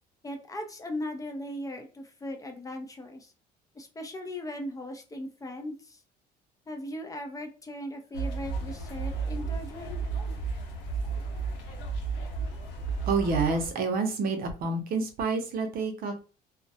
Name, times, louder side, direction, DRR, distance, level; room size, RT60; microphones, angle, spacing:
voice 1, 0.2-3.3 3.7-6.0 6.7-10.0, left 1 dB, 20° left, 5 dB, 0.5 m, -38 dB
sound 1, 8.1-13.7, right 4 dB, 90° left, 0.8 m, -33 dB
voice 2, 13.1-16.3, right 4 dB, 60° right, 5 dB, 0.6 m, -28 dB
2.3 x 2.1 x 2.7 m, 0.34 s
cardioid pair, 110°, 17 cm